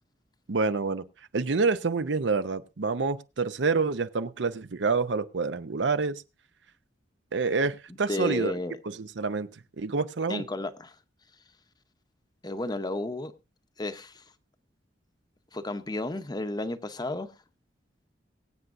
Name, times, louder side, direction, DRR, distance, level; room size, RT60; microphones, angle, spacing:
voice 1, 0.5-1.0 1.3-6.2 7.3-8.5 8.9-9.5 9.8-10.4, right 4 dB, 75° right, 0.7 m, -27 dB
voice 2, 8.1-8.8 10.3-10.9 12.4-13.3 13.8-14.2 15.5-17.3, left 1 dB, 25° left, 0.8 m, -32 dB
23.5 x 8.0 x 2.6 m
head